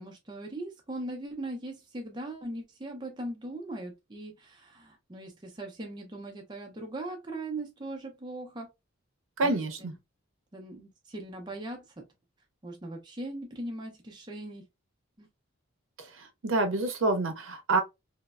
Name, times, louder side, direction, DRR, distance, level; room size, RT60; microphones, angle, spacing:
voice 1, 0.0-8.7 9.4-9.9 10.5-12.1 12.6-14.6 15.2-15.3, right 1 dB, 20° right, 0.4 m, -40 dB
voice 2, 9.4-9.9 16.0-17.8, right 3 dB, 70° right, 0.6 m, -28 dB
3.0 x 2.0 x 2.3 m
head